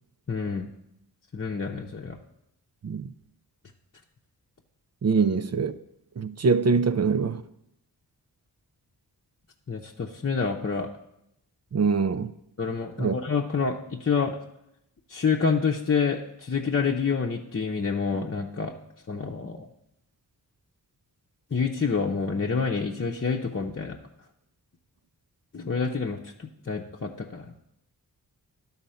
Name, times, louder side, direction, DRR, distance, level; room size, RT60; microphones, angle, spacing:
voice 1, 0.3-0.7 1.3-2.2 9.7-10.9 12.6-14.4 15.1-18.7 19.1-19.7 21.5-24.0 25.5-27.4, left 5 dB, 35° left, 0.8 m, -28 dB
voice 2, 5.0-5.8 6.2-7.4 11.7-12.3 13.0-13.2, right 5 dB, 40° right, 0.6 m, -23 dB
11.5 x 4.1 x 5.7 m
cardioid pair, 40°, 40 cm